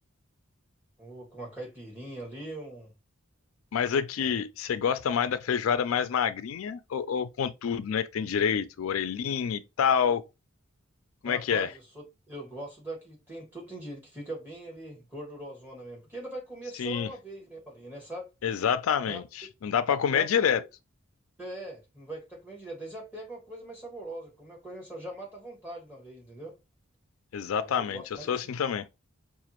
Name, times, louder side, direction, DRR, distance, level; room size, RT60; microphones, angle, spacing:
voice 1, 1.0-2.9 4.2-4.3 11.2-18.3 19.1-19.2 20.1-20.4 21.4-26.5 27.6-28.5, right 1 dB, 10° right, 1.6 m, -41 dB
voice 2, 3.7-10.2 11.2-11.7 16.8-17.1 18.4-20.6 27.3-28.0 28.3-28.9, left 7 dB, 80° left, 0.4 m, -27 dB
4.8 x 2.5 x 2.9 m
head